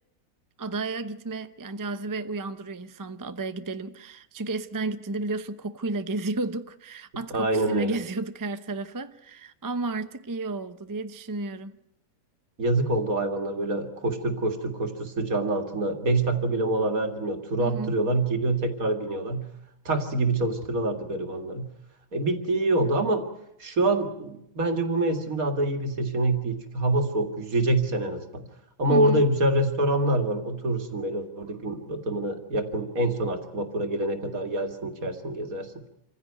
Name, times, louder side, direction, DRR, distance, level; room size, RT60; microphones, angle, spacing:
voice 1, 0.6-11.8 17.6-18.0 28.9-29.2, right 3 dB, 30° right, 0.3 m, -32 dB
voice 2, 7.3-8.0 12.6-19.5 19.9-21.7 22.1-23.3 23.6-28.5 28.8-35.7, right 2 dB, 50° right, 2.5 m, -26 dB
27.0 x 15.5 x 9.3 m
omnidirectional pair, 1.9 m